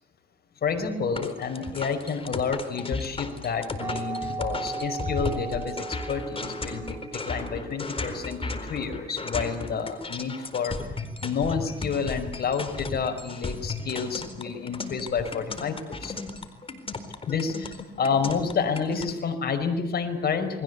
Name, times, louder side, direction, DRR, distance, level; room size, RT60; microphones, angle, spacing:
voice 1, 0.6-10.9 11.2-16.2 17.3-20.6, left 5 dB, 55° left, 6 dB, 5.3 m, -29 dB
sound 1, 1.1-19.1, left 3 dB, 30° left, 4.3 m, -35 dB
sound 2, 3.8-9.2, right 4 dB, 15° right, 4.8 m, -37 dB
29.5 x 21.5 x 8.3 m, 0.77 s
cardioid pair, 90°, 20 cm